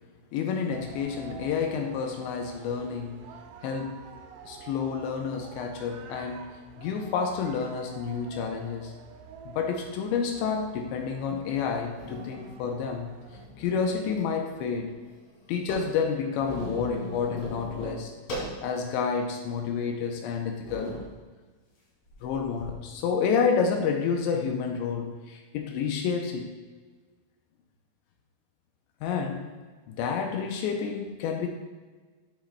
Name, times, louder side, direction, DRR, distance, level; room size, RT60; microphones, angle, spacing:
voice 1, 0.3-3.2 3.6-4.0 4.5-6.5 6.8-8.9 9.5-13.1 13.6-14.9 15.5-18.1 18.6-21.0 22.2-26.5 29.0-29.5 29.9-31.5, left 6 dB, 85° left, 3 dB, 2.7 m, -29 dB
sound 1, 0.7-13.5, right 6 dB, 80° right, 2.6 m, -47 dB
sound 2, 11.9-12.5 13.2-14.2 14.5-14.6 14.9-18.7 19.2-19.3 20.0-20.1 20.6-21.1 22.1-22.7, equal, 45° left, 3.0 m, -39 dB
10.5 x 7.2 x 2.3 m, 1.4 s
omnidirectional pair, 5.5 m